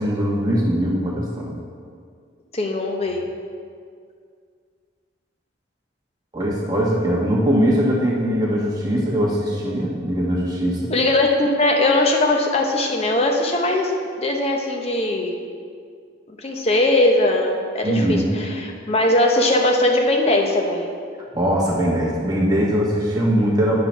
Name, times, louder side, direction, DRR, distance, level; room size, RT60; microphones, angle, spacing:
voice 1, 0.0-1.5 6.3-10.9 17.8-18.3 21.3-23.7, equal, 20° right, -5 dB, 1.2 m, -21 dB
voice 2, 2.5-3.2 10.9-13.9 14.2-15.4 16.4-20.9, left 2 dB, 35° left, 2 dB, 0.7 m, -20 dB
8.6 x 3.9 x 6.1 m, 2.1 s
head